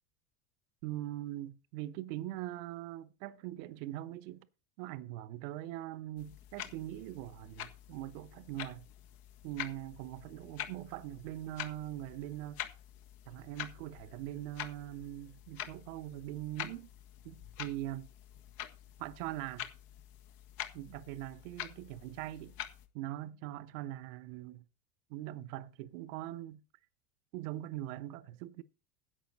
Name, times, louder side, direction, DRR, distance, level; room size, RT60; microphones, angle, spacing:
voice 1, 0.8-4.5 4.8-8.9 9.4-12.7 13.3-16.9 17.2-18.1 19.0-19.7 20.7-22.5 22.9-24.6 25.1-26.6 27.3-28.6, right 14 dB, 55° right, 1.0 m, -42 dB
sound 1, 6.2-22.9, left 11 dB, 50° left, 1.7 m, -47 dB
11.0 x 8.5 x 4.1 m
hypercardioid pair, 80°, 45 cm